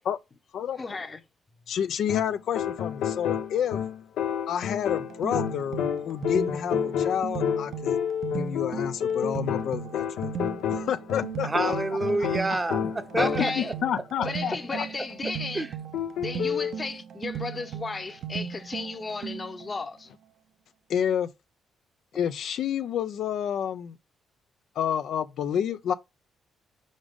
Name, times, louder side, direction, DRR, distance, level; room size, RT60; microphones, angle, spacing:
voice 1, 0.8-1.2 13.2-13.7 14.2-15.6 16.2-20.1, left 4 dB, 30° left, 0.9 m, -34 dB
voice 2, 1.7-3.8 4.5-8.0 8.3-10.3 10.8-11.7 12.5-12.6 13.4-14.8 20.9-21.3 22.1-24.0 24.8-25.9, left 9 dB, 70° left, 0.4 m, -29 dB
sound 1, 2.1-13.7 15.9-16.8, left 8 dB, 90° left, 0.9 m, -30 dB
sound 2, 4.9-19.7, right 8 dB, 70° right, 0.7 m, -37 dB
voice 3, 11.4-13.7 14.2-14.3 15.5-15.7, right 2 dB, 20° right, 0.7 m, -28 dB
5.1 x 5.0 x 3.6 m
cardioid pair, 90°, 0 cm